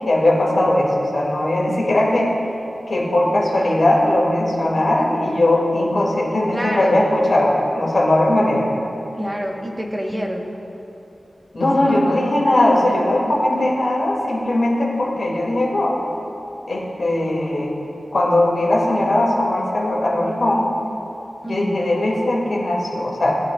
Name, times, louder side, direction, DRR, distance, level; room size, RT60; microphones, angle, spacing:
voice 1, 0.0-2.3 2.9-8.7 11.5-15.9 16.7-17.7 18.1-20.7 21.4-23.4, left 1 dB, 60° left, -3 dB, 2.7 m, -19 dB
voice 2, 6.5-7.0 9.2-10.6 11.9-12.1 13.3-13.4 21.4-21.8, equal, 15° right, -1 dB, 1.5 m, -27 dB
19.0 x 9.7 x 2.6 m, 2.9 s
wide cardioid pair, 80°, 0 cm